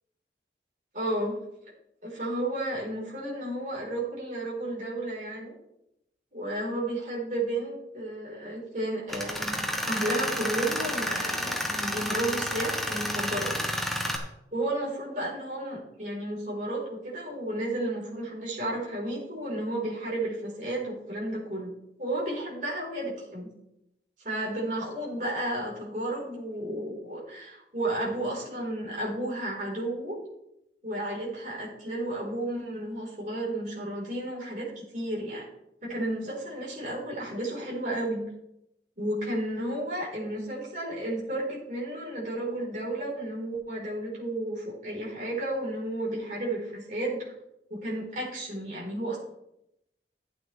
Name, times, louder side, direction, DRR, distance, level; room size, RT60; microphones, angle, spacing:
voice 1, 0.9-1.4 2.0-5.5 6.3-9.6 9.9-13.5 14.5-21.7 22.0-23.5 24.2-30.2 30.8-35.5 35.8-38.3 39.0-47.2 47.7-49.2, right 1 dB, 45° right, -4 dB, 4.3 m, -32 dB
Tools, 9.1-14.2, equal, ahead, 1.1 m, -30 dB
12.5 x 8.7 x 3.4 m, 0.84 s
head